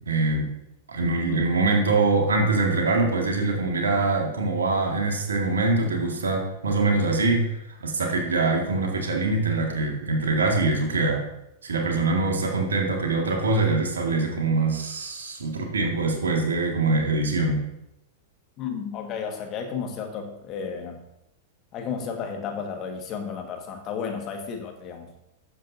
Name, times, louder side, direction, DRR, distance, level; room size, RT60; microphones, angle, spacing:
voice 1, 0.1-0.5 0.9-11.2 11.6-17.6, right 3 dB, 70° right, 1 dB, 2.1 m, -24 dB
voice 2, 18.6-21.0 21.7-25.1, left 6 dB, 35° left, 3 dB, 1.8 m, -33 dB
12.0 x 7.5 x 2.8 m, 0.84 s
figure-of-eight pair, 95°, 0 cm